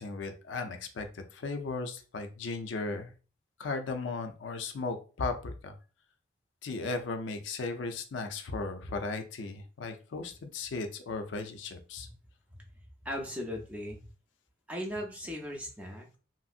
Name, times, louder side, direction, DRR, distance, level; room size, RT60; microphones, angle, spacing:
voice 1, 0.0-3.1 3.6-5.8 6.6-12.1, left 3 dB, 80° left, 7 dB, 0.4 m, -36 dB
voice 2, 12.5-14.0 14.7-16.2, equal, 5° right, 1 dB, 0.5 m, -38 dB
3.0 x 2.6 x 2.4 m, 0.36 s
head